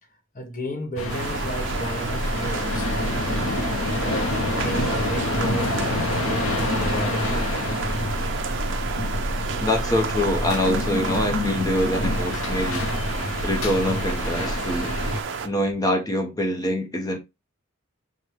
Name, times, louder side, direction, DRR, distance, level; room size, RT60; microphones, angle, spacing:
voice 1, 0.3-3.4 3.9-4.4 4.6-8.0, equal, 40° left, 1.0 m, -34 dB
sound 1, 1.0-15.2, left 2 dB, 85° left, 0.8 m, -27 dB
sound 2, 1.1-15.5, right 5 dB, 60° right, 0.6 m, -31 dB
voice 2, 9.6-12.8 13.4-15.0 15.4-17.2, left 1 dB, 20° left, 0.6 m, -25 dB
6.2 x 2.2 x 3.2 m
head